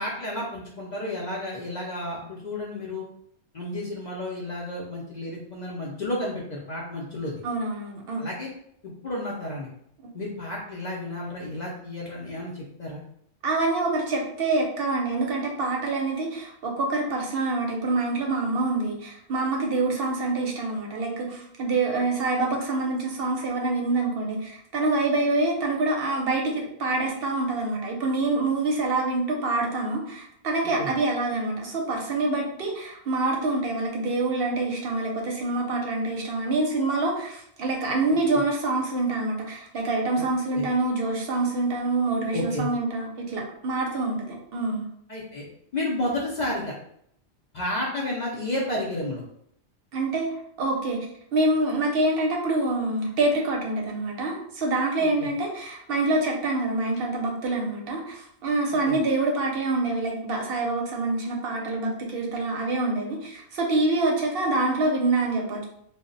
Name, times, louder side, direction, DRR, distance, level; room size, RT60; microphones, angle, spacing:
voice 1, 0.0-3.0 3.5-7.4 8.2-8.5 9.0-9.7 10.1-13.0 30.8-30.9 38.3-38.4 40.5-40.7 42.3-42.7 45.1-45.4 45.7-46.7 47.5-49.2 55.0-55.3 58.9-59.0, left 1 dB, 55° left, -3 dB, 0.5 m, -31 dB
voice 2, 7.4-8.2 13.4-44.9 49.9-50.3 50.6-51.1 51.3-65.6, right 2 dB, 65° right, 0 dB, 0.7 m, -26 dB
2.1 x 2.0 x 3.7 m, 0.70 s
omnidirectional pair, 1.1 m